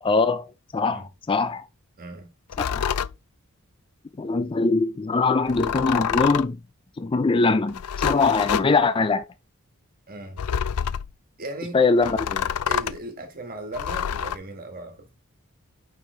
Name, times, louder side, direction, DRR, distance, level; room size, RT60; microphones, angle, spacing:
voice 1, 0.0-1.6 2.7-3.0 4.2-6.6 7.0-9.2 11.7-12.5, left 3 dB, 25° left, 0.4 m, -22 dB
voice 2, 2.0-2.3 10.1-10.4 11.4-11.8 12.7-15.1, right 2 dB, 40° right, 1.8 m, -37 dB
sound 1, 2.5-3.1 5.5-6.6 7.7-8.7 10.4-11.1 12.0-13.0 13.7-14.4, left 8 dB, 90° left, 0.5 m, -27 dB
8.8 x 5.6 x 3.3 m
head